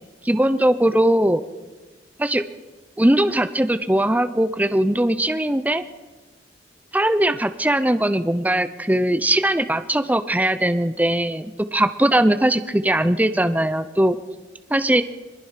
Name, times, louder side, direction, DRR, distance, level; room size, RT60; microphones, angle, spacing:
voice 1, 0.2-1.4 2.2-2.4 3.0-5.8 6.9-14.2 14.7-15.0, right 1 dB, 10° right, 11 dB, 0.7 m, -20 dB
22.5 x 21.0 x 5.8 m, 1.3 s
head